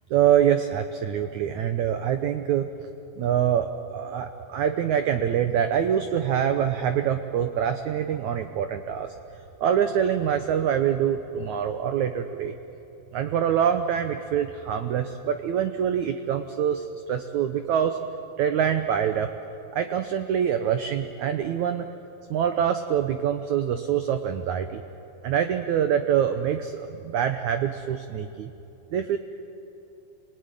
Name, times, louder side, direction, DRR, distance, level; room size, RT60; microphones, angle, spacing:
voice 1, 0.1-2.7 3.2-9.1 9.6-12.5 13.1-18.0 18.4-19.3 19.7-21.9 22.3-24.8 25.2-28.5 28.9-29.2, right 9 dB, 85° right, 7 dB, 1.6 m, -25 dB
27.5 x 20.0 x 9.9 m, 2.8 s
omnidirectional pair, 4.6 m